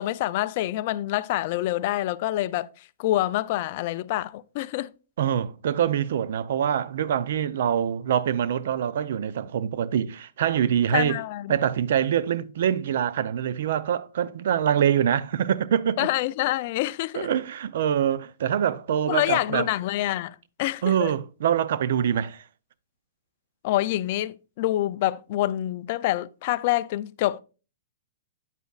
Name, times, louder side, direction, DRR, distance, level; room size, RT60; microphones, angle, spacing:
voice 1, 0.0-2.7 3.0-4.9 10.9-11.6 16.0-17.3 19.1-21.1 23.6-27.4, left 15 dB, 45° left, 0.4 m, -26 dB
voice 2, 5.2-11.2 11.5-16.1 17.1-19.7 20.8-22.4, right 9 dB, 65° right, 0.5 m, -24 dB
9.1 x 8.2 x 2.4 m
hypercardioid pair, 155°, 0 cm